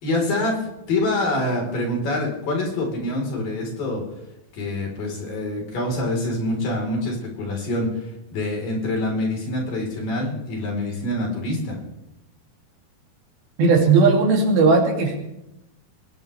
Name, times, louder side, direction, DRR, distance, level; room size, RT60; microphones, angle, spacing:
voice 1, 0.0-4.0 4.5-11.8, left 1 dB, 60° left, 0 dB, 6.0 m, -26 dB
voice 2, 13.6-15.2, right 4 dB, 75° right, 1 dB, 4.7 m, -17 dB
21.0 x 19.5 x 3.4 m, 0.88 s
omnidirectional pair, 4.4 m